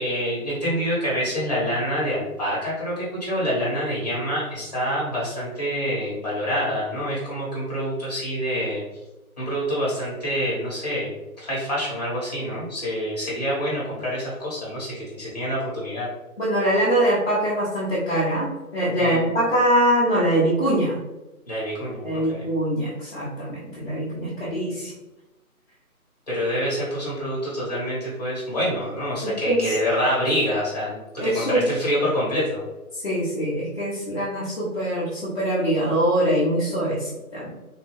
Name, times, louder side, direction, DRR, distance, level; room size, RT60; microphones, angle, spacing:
voice 1, 0.0-8.8 9.4-16.1 19.0-19.2 21.5-22.5 26.3-31.0 31.2-32.6, equal, 25° left, -7 dB, 1.1 m, -26 dB
voice 2, 16.4-18.5 18.7-21.0 22.0-24.9 29.2-29.7 31.2-31.6 33.0-37.5, right 1 dB, 40° left, -8 dB, 0.7 m, -23 dB
3.5 x 2.2 x 2.9 m, 1.0 s
figure-of-eight pair, 175°, 45 cm